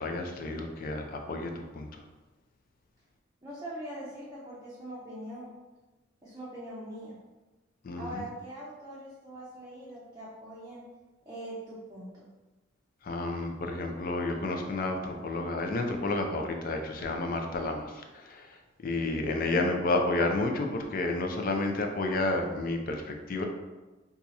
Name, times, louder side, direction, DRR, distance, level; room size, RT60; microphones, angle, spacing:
voice 1, 0.0-2.0 7.8-8.2 13.0-18.5 18.8-23.4, left 2 dB, 50° left, 4 dB, 0.4 m, -31 dB
voice 2, 3.4-5.5 6.2-7.2 8.0-10.8 11.3-12.2, right 1 dB, 20° right, -8 dB, 0.6 m, -42 dB
2.8 x 2.3 x 4.0 m, 1.2 s
head